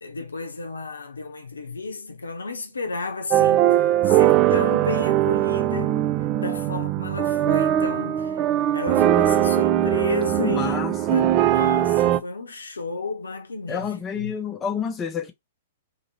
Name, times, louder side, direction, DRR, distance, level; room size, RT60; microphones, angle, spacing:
voice 1, 0.0-6.0 6.4-8.4 8.7-10.8 11.1-14.3, left 3 dB, 80° left, 0.7 m, -32 dB
sound 1, 3.3-12.2, right 12 dB, 35° right, 0.3 m, -20 dB
voice 2, 10.4-11.3 13.7-15.3, left 7 dB, 20° left, 0.6 m, -29 dB
2.8 x 2.8 x 2.7 m
figure-of-eight pair, 105°, 0 cm